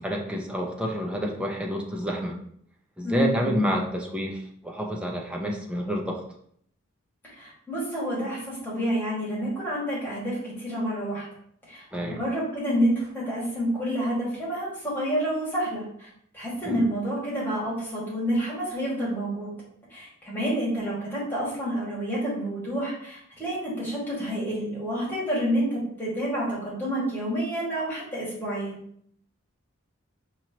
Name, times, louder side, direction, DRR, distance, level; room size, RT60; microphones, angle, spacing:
voice 1, 0.0-2.4 3.0-6.2 11.9-12.2 16.6-16.8, equal, 5° right, 0 dB, 0.6 m, -29 dB
voice 2, 3.0-3.5 7.4-11.2 11.7-16.1 16.3-19.5 19.9-28.7, equal, 10° left, -7 dB, 1.7 m, -28 dB
5.3 x 3.0 x 2.8 m, 0.65 s
head